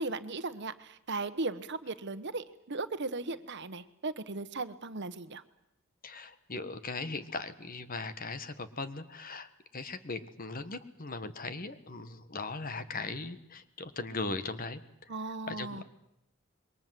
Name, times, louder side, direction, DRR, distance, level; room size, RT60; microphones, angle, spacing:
voice 1, 0.0-5.4 15.1-15.8, right 3 dB, 55° right, 12 dB, 1.2 m, -37 dB
voice 2, 6.0-14.8 15.5-15.8, left 3 dB, 40° left, 11 dB, 1.4 m, -39 dB
27.0 x 22.5 x 7.7 m, 0.80 s
head